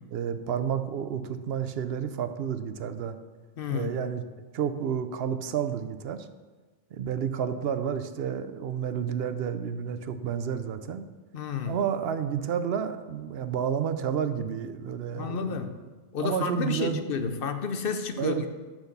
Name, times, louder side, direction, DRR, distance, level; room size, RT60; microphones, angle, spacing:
voice 1, 0.1-3.2 3.7-4.2 4.5-6.3 6.9-11.0 11.7-15.6 16.2-17.3 18.2-18.5, right 8 dB, 75° right, 11 dB, 0.8 m, -30 dB
voice 2, 3.6-4.0 11.3-11.8 15.1-15.8 16.1-18.5, left 6 dB, 65° left, 8 dB, 0.9 m, -31 dB
8.1 x 5.9 x 6.6 m, 1.3 s
omnidirectional pair, 1.0 m